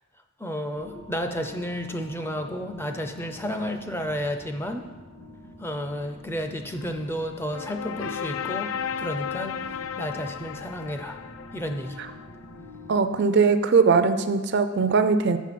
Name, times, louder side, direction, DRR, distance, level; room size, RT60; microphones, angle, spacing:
voice 1, 0.4-4.9 5.6-11.2 11.5-12.0, equal, 10° left, 6 dB, 0.5 m, -32 dB
sound 1, 0.7-13.0, left 1 dB, 50° left, 1.7 m, -46 dB
sound 2, 6.8-12.7, left 7 dB, 70° left, 0.3 m, -35 dB
voice 2, 12.9-15.4, right 5 dB, 55° right, 10 dB, 0.4 m, -20 dB
7.4 x 6.1 x 5.8 m, 1.3 s
head